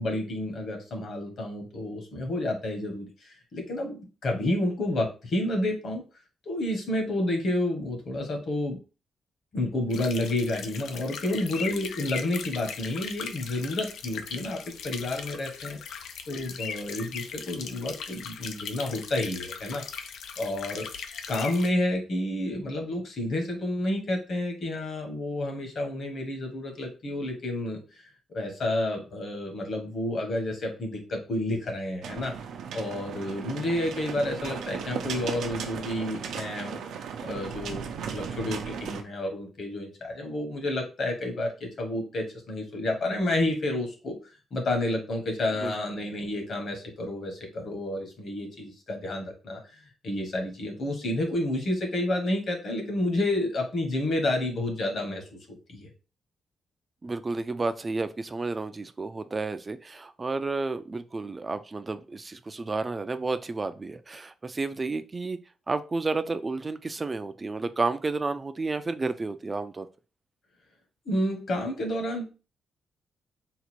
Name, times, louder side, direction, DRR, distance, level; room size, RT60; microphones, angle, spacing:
voice 1, 0.0-6.0 6.4-8.8 9.5-16.0 16.3-19.8 20.4-20.8 21.3-27.8 28.3-32.3 32.7-36.8 37.2-44.2 44.5-55.4 55.7-55.9 71.0-72.3, left 1 dB, 50° left, 3 dB, 1.4 m, -30 dB
sound 1, 9.9-21.7, left 6 dB, 80° left, 0.5 m, -39 dB
sound 2, 32.0-39.0, right 7 dB, 80° right, 0.6 m, -36 dB
voice 2, 57.0-65.4 65.7-69.9, right 3 dB, 20° right, 10 dB, 0.3 m, -31 dB
4.0 x 2.5 x 4.5 m, 0.33 s
cardioid pair, 150°, 0 cm